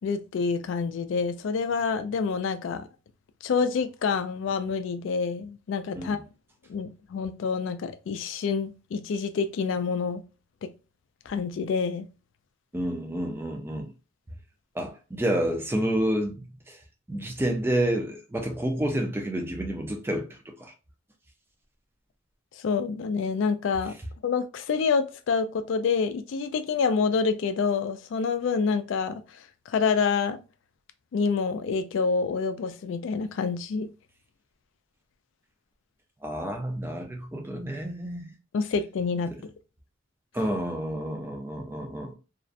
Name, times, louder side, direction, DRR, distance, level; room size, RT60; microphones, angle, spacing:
voice 1, 0.0-2.9 3.4-6.2 6.7-10.2 10.6-10.7 11.3-12.1 22.6-24.0 24.2-29.2 29.7-30.4 31.1-33.9 38.5-39.3, left 5 dB, 65° left, 0.3 m, -27 dB
voice 2, 12.7-13.9 14.8-16.8 17.1-20.3 20.6-20.7 36.2-38.3 40.3-42.1, right 1 dB, 10° right, 0.4 m, -29 dB
2.4 x 2.1 x 2.5 m
head